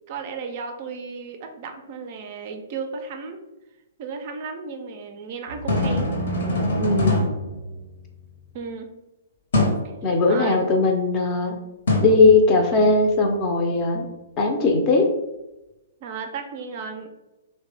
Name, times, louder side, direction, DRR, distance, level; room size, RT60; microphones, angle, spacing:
voice 1, 0.1-3.4 4.0-6.1 8.5-8.9 10.3-10.6 16.0-17.1, right 5 dB, 40° right, 5 dB, 0.4 m, -34 dB
sound 1, 5.5-8.3 9.5-9.9 11.9-12.9, left 1 dB, 60° left, 0.8 m, -24 dB
voice 2, 6.8-7.2 10.0-11.6 12.0-14.1 14.4-15.1, left 3 dB, 30° left, 2 dB, 0.5 m, -19 dB
3.2 x 2.1 x 3.3 m, 0.98 s
figure-of-eight pair, 115°, 0 cm